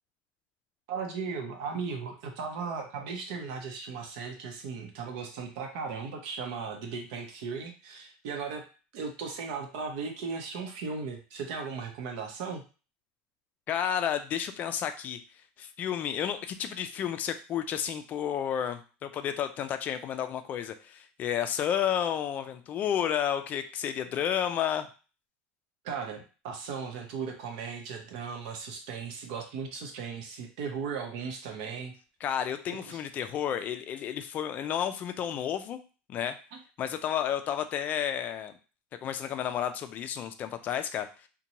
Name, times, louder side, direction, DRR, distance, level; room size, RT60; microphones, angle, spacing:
voice 1, 0.9-8.6 8.9-12.6 25.8-31.9 32.7-33.0, right 5 dB, 75° right, 4 dB, 0.7 m, -37 dB
voice 2, 13.7-15.2 15.6-24.9 32.2-35.8 36.1-36.4 36.8-38.5 39.0-41.3, left 9 dB, 35° left, 9 dB, 0.3 m, -31 dB
2.6 x 2.2 x 2.9 m, 0.34 s
supercardioid pair, 135°, 5 cm